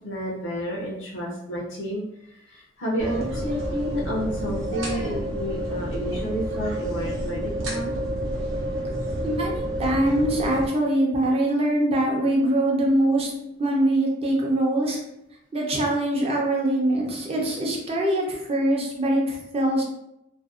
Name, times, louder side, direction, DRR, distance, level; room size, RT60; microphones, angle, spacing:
voice 1, 0.0-2.0 2.3-8.0 11.5-12.4 12.8-13.5 16.8-17.2, equal, 70° left, -4 dB, 0.5 m, -31 dB
sound 1, 3.0-10.7, right 1 dB, 75° right, 0.6 m, -29 dB
voice 2, 9.2-13.3 13.6-15.0 15.5-19.8, right 1 dB, 30° right, -2 dB, 0.5 m, -23 dB
2.5 x 2.1 x 2.4 m, 0.84 s
head